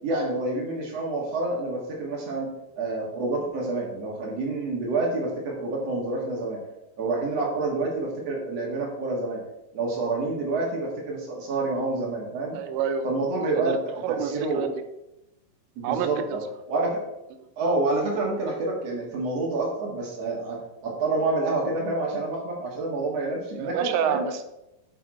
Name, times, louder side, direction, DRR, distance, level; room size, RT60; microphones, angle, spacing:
voice 1, 0.0-2.5 2.8-6.6 7.0-9.4 9.7-12.6 13.0-14.7 15.8-16.4 16.7-17.0 17.6-20.6 20.8-24.2, right 2 dB, 55° right, -1 dB, 1.9 m, -28 dB
voice 2, 12.5-13.1 13.5-13.8 14.0-14.7 15.8-16.4 17.4-17.5 23.6-24.4, right 8 dB, 85° right, 9 dB, 3.0 m, -28 dB
8.7 x 6.3 x 4.2 m, 0.90 s
omnidirectional pair, 5.0 m